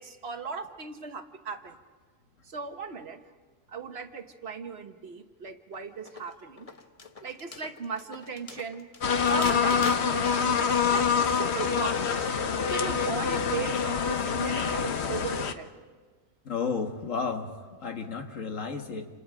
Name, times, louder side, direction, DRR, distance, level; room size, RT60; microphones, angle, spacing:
voice 1, 0.0-1.8 2.4-3.2 3.7-6.7 7.2-8.9 9.2-10.6 10.9-12.3 12.7-15.7, right 5 dB, 55° right, 7 dB, 1.4 m, -37 dB
sound 1, 5.7-10.6, left 4 dB, 30° left, 0.9 m, -41 dB
sound 2, 9.0-15.5, left 6 dB, 60° left, 1.2 m, -26 dB
voice 2, 16.5-19.1, left 5 dB, 85° left, 5 dB, 2.0 m, -32 dB
28.5 x 27.0 x 5.1 m, 1.4 s
omnidirectional pair, 1.3 m